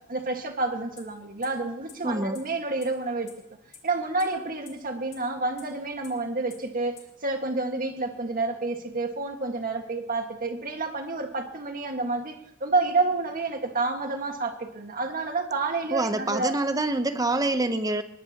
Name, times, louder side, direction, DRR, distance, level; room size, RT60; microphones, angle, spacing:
voice 1, 0.1-3.3 3.8-16.6, right 3 dB, 40° right, 4 dB, 1.8 m, -29 dB
sound 1, 1.0-1.1 1.4-1.5 1.9-2.0 2.3-2.4 2.8-2.9 3.3-3.4 3.7-3.8 4.2-4.3 4.7-4.8 5.1-5.2 5.6-5.7 6.0-6.1 6.5-6.6 7.0-7.1, left 8 dB, 35° left, 3.6 m, -46 dB
voice 2, 2.0-2.4 15.9-18.0, right 2 dB, 15° right, 9 dB, 0.9 m, -26 dB
22.5 x 20.0 x 3.0 m, 0.82 s
head